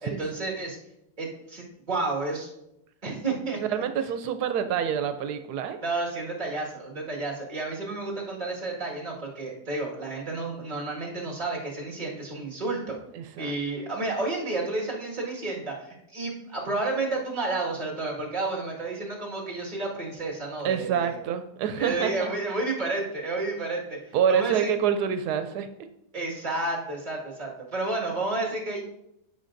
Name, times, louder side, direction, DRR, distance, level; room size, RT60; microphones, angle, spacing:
voice 1, 0.0-0.8 1.2-2.5 3.0-3.6 5.8-13.0 13.4-21.2 21.8-24.0 24.3-24.7 26.1-28.8, right 2 dB, 30° right, -3 dB, 2.0 m, -31 dB
voice 2, 3.6-5.8 13.1-13.5 20.6-22.3 24.1-25.7, right 8 dB, 90° right, 9 dB, 1.1 m, -27 dB
13.5 x 5.5 x 2.6 m, 0.82 s
omnidirectional pair, 1.7 m